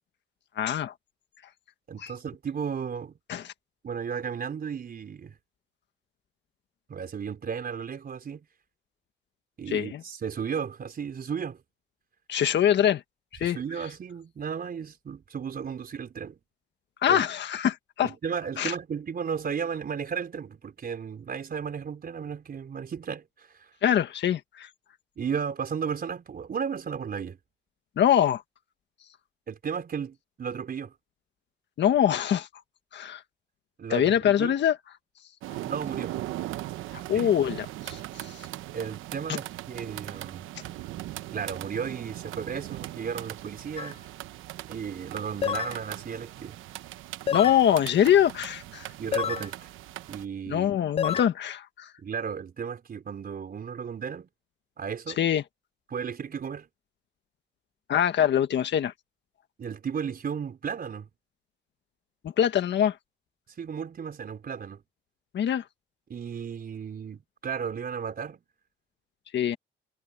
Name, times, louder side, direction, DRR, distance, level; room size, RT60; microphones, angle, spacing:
voice 1, 0.5-0.9 2.0-2.1 3.3-3.5 9.7-10.0 12.3-13.0 13.3-13.6 17.0-18.1 18.6-18.7 23.8-24.7 28.0-28.4 31.8-32.5 32.9-33.2 33.9-34.8 36.9-38.5 47.3-48.9 50.5-51.9 55.2-55.4 57.9-58.9 62.4-63.0 65.3-65.6 69.3-69.6, left 10 dB, 65° left, 1.6 m, -24 dB
voice 2, 1.9-3.1 3.8-5.3 6.9-8.4 9.6-11.6 13.4-16.4 17.1-17.2 18.0-23.7 25.2-27.4 29.5-30.9 33.8-34.6 35.6-36.2 37.1-37.3 38.7-40.4 41.3-44.0 44.7-46.6 49.0-49.7 50.1-50.7 52.0-54.3 54.8-55.2 55.9-56.7 59.6-61.1 63.6-64.8 66.1-68.4, right 7 dB, 50° right, 4.6 m, -34 dB
sound 1, 35.4-50.3, right 15 dB, 90° right, 0.9 m, -39 dB
sound 2, 43.8-43.9 45.4-45.8 47.3-47.6 49.1-49.5 51.0-51.3, left 8 dB, 30° left, 0.4 m, -28 dB
cardioid pair, 90°, 20 cm